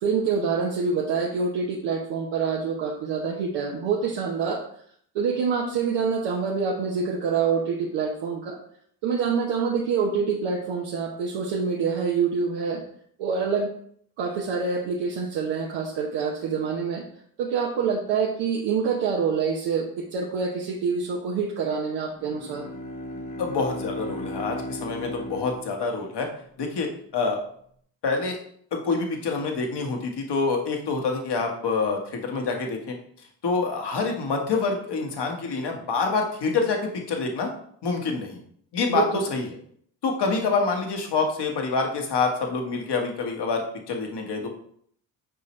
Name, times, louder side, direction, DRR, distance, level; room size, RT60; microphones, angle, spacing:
voice 1, 0.0-4.6 5.1-8.6 9.0-12.8 13.2-13.7 14.2-17.0 17.4-22.7 38.9-39.1, right 5 dB, 85° right, -3 dB, 1.1 m, -26 dB
Bowed string instrument, 22.1-26.5, left 1 dB, 40° left, 1.1 m, -36 dB
voice 2, 23.4-26.3 26.6-27.4 28.0-28.4 28.7-33.0 33.4-36.8 37.1-37.5 37.8-38.4 38.7-39.6 40.0-44.5, left 4 dB, 60° left, 2 dB, 1.6 m, -26 dB
6.6 x 4.8 x 3.2 m, 0.63 s
supercardioid pair, 60°, 46 cm